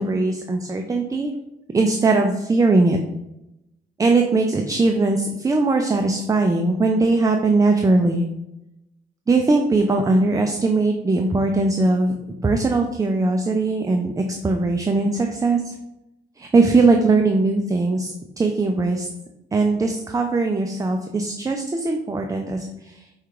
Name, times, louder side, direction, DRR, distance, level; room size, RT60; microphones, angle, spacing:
voice 1, 0.0-1.3 1.7-3.0 4.0-8.2 9.3-12.2 12.4-15.8 16.4-19.1 19.5-23.1, right 3 dB, 15° right, 4 dB, 0.4 m, -20 dB
4.7 x 2.4 x 4.6 m, 0.89 s
cardioid pair, 90°, 20 cm